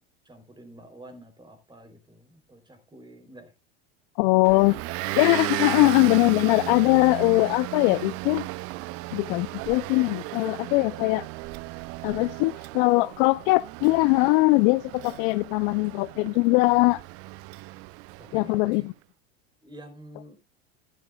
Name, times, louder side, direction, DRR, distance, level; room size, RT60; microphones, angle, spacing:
voice 1, 0.2-3.5 18.2-18.9 19.6-20.4, right 1 dB, 15° right, 3.2 m, -47 dB
voice 2, 4.2-4.8 5.2-8.5 9.1-11.3 12.0-17.0 18.3-18.8, left 23 dB, 55° left, 0.5 m, -21 dB
Motor vehicle (road) / Engine, 4.4-18.7, right 20 dB, 50° right, 0.5 m, -35 dB
13.5 x 12.0 x 2.3 m
hypercardioid pair, 105°, 31 cm